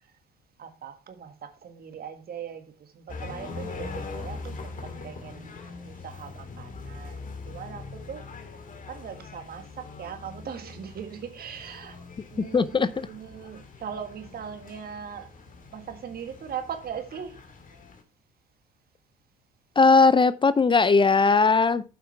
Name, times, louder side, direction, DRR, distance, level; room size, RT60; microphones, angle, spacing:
voice 1, 0.6-5.5 5.8-8.3 8.9-12.0 12.3-15.3 15.7-17.4, right 8 dB, 50° right, 1.6 m, -40 dB
sound 1, 3.1-18.0, left 4 dB, 45° left, 2.0 m, -42 dB
voice 2, 12.4-13.1 19.8-21.8, left 4 dB, 25° left, 0.5 m, -19 dB
8.4 x 5.7 x 4.5 m
hypercardioid pair, 60°, 19 cm